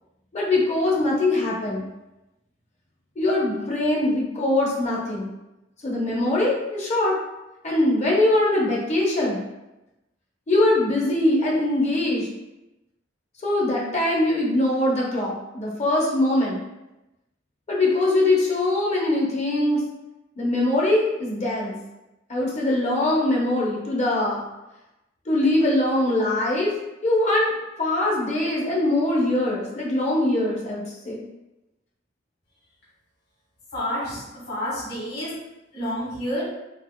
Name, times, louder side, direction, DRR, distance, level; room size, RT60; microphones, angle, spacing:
voice 1, 0.3-1.8 3.2-5.3 5.8-7.1 7.6-9.4 10.5-12.3 13.4-16.6 17.7-19.8 20.4-21.8 22.3-24.4 25.3-26.7 27.0-27.5 27.8-31.2, left 1 dB, 35° left, -3 dB, 0.7 m, -22 dB
voice 2, 33.7-35.4 35.7-36.4, equal, 55° left, -9 dB, 1.4 m, -29 dB
4.1 x 2.4 x 2.2 m, 0.97 s
head